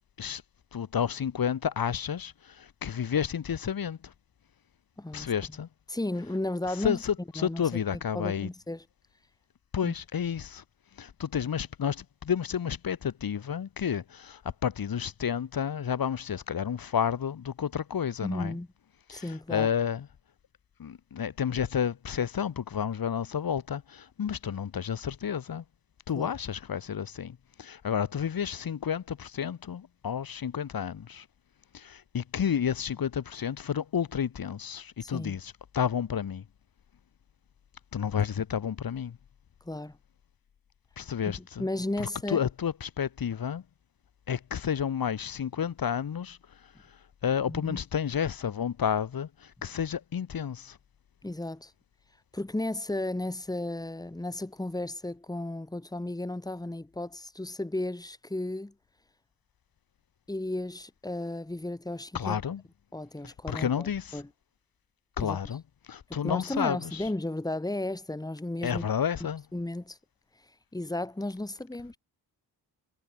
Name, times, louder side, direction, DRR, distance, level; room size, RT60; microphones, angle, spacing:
voice 1, 0.7-4.1 5.1-5.7 6.7-8.5 9.7-10.6 11.0-18.6 19.1-20.1 20.8-25.6 26.1-31.3 31.7-36.4 37.9-39.2 41.0-41.7 42.0-43.6 44.3-46.4 46.6-50.8 62.1-62.6 63.2-64.2 65.2-67.1 68.6-69.4, left 8 dB, 60° left, 3.4 m, -31 dB
voice 2, 5.0-5.3 5.9-7.0 7.4-7.6 8.1-8.8 9.8-9.9 18.2-18.7 19.1-19.7 26.1-26.3 35.0-35.4 39.7-40.0 41.3-42.4 47.5-47.8 51.2-51.7 52.3-58.7 60.3-62.4 62.9-64.3 65.2-65.4 66.1-68.9 69.5-70.0 70.7-72.0, left 1 dB, 10° left, 3.5 m, -34 dB
wide cardioid pair, 125°, 40 cm